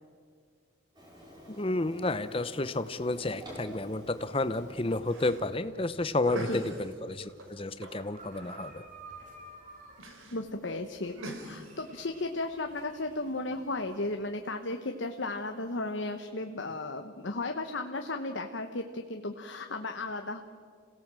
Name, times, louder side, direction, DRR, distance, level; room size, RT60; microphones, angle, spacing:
Printer, 0.9-5.6, equal, 20° right, 5.5 m, -49 dB
voice 1, 1.5-8.8, left 2 dB, 25° left, 13 dB, 0.7 m, -31 dB
sound 1, 3.0-14.1, right 2 dB, 40° right, 3.1 m, -54 dB
sound 2, 4.7-16.3, equal, 90° right, 3.4 m, -47 dB
voice 2, 10.3-11.2 11.4-20.4, left 2 dB, 65° left, 5 dB, 1.0 m, -35 dB
27.5 x 17.5 x 7.5 m, 2.1 s
head